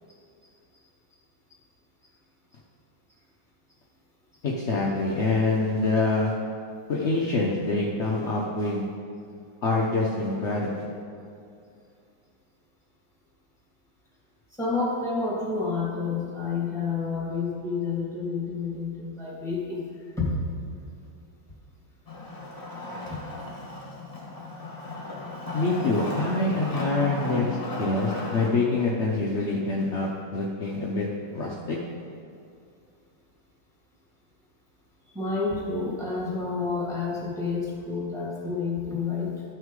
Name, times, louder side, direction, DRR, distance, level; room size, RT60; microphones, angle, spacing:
voice 1, 4.4-6.3 6.9-8.9 9.6-10.9 25.5-31.1 31.3-31.8, left 3 dB, 60° left, -3 dB, 0.7 m, -25 dB
voice 2, 14.6-19.8 20.2-20.3 23.1-23.2 35.1-39.3, left 4 dB, ahead, -6 dB, 2.1 m, -29 dB
Wood, 22.1-28.5, left 1 dB, 30° left, 1.4 m, -35 dB
12.0 x 6.2 x 3.7 m, 2.5 s
omnidirectional pair, 2.1 m